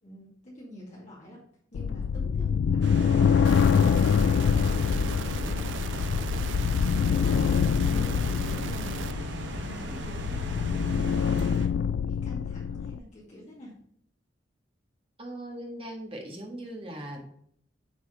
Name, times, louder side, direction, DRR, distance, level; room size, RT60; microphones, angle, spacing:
voice 1, 0.0-1.4 1.7-3.7 4.3-6.1 7.8-9.1 9.5-11.2 12.1-13.7, left 1 dB, 40° left, -6 dB, 2.3 m, -46 dB
sound 1, 1.7-13.0, left 7 dB, 75° left, 0.3 m, -25 dB
sound 2, 2.8-11.7, right 1 dB, 70° right, 1.1 m, -37 dB
sound 3, 3.4-9.1, right 6 dB, 85° right, 0.5 m, -39 dB
voice 2, 15.2-17.2, right 1 dB, 30° right, 2 dB, 1.7 m, -39 dB
8.5 x 4.3 x 5.2 m, 0.63 s
head